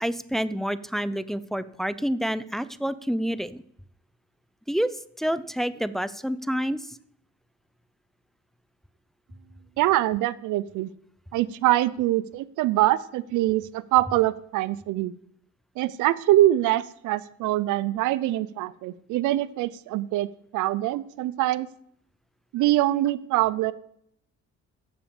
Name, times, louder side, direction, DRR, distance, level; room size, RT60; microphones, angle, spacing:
voice 1, 0.0-3.6 4.7-4.9 5.2-6.9, equal, ahead, 15 dB, 0.4 m, -28 dB
voice 2, 9.8-10.9 11.3-15.1 15.8-20.3 20.5-21.7 22.5-23.7, right 15 dB, 90° right, 19 dB, 0.5 m, -24 dB
8.6 x 7.2 x 6.9 m, 0.69 s
cardioid pair, 90°, 30 cm